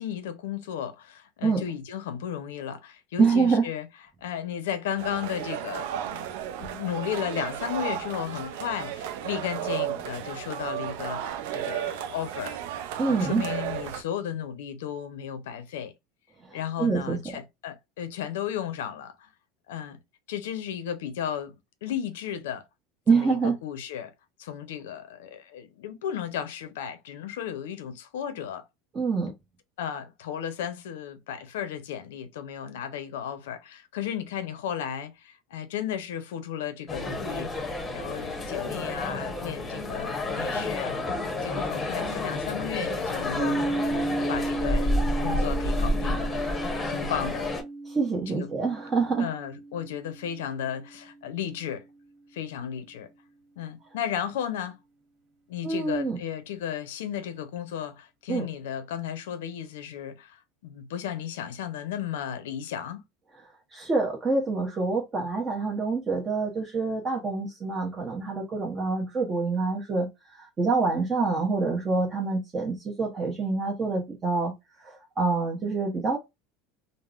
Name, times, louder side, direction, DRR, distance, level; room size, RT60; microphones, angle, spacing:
voice 1, 0.0-3.9 4.2-6.3 6.6-12.6 13.1-15.9 16.5-19.3 19.7-20.0 20.3-21.5 21.8-22.6 23.1-24.1 24.4-28.6 29.8-37.5 37.9-41.0 41.4-43.6 44.3-44.9 45.2-46.3 46.9-47.5 48.3-48.5 49.2-51.8 52.3-53.1 53.6-54.8 55.5-63.0, left 9 dB, 80° left, 0.5 m, -34 dB
voice 2, 3.2-3.7 13.0-13.4 16.5-17.2 23.1-23.6 28.9-29.3 47.9-49.3 55.6-56.2 58.3-58.5 63.7-70.1 70.3-74.5 74.8-76.2, right 4 dB, 30° right, 0.8 m, -26 dB
sound 1, 5.0-14.0, right 11 dB, 75° right, 0.4 m, -34 dB
sound 2, 36.9-47.6, left 1 dB, 20° left, 0.8 m, -30 dB
sound 3, 43.4-51.2, right 2 dB, 50° right, 1.3 m, -34 dB
3.5 x 2.0 x 2.3 m
hypercardioid pair, 95°, 0 cm